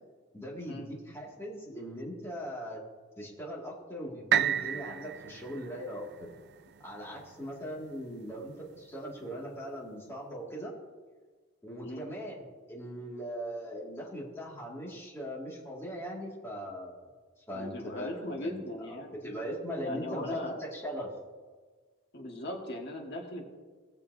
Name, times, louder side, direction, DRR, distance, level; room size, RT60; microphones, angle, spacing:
voice 1, 0.3-2.8 3.2-6.3 6.8-10.7 11.6-17.1 17.5-18.6 18.9-21.1, equal, 15° left, -5 dB, 2.1 m, -40 dB
sound 1, 4.3-8.2 8.8-8.9, right 9 dB, 55° right, 0.3 m, -33 dB
voice 2, 17.5-19.1 19.8-20.6 22.1-23.5, left 1 dB, 55° left, 1 dB, 1.6 m, -38 dB
18.5 x 7.0 x 2.7 m, 1.4 s
head